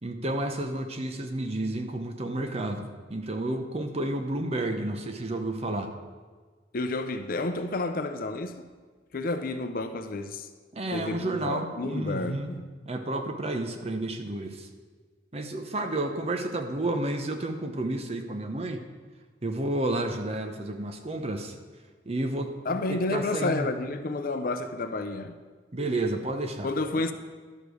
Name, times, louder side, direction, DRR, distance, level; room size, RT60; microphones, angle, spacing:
voice 1, 0.0-5.9 10.7-12.5 12.9-14.7 15.3-18.8 19.4-21.5 22.1-22.5 22.9-23.7 25.7-26.7, right 1 dB, 35° right, 0.8 m, -31 dB
voice 2, 6.7-8.6 9.1-10.5 10.9-12.7 22.7-25.3 26.6-27.1, left 2 dB, 55° left, 0.6 m, -30 dB
12.0 x 5.1 x 6.3 m
head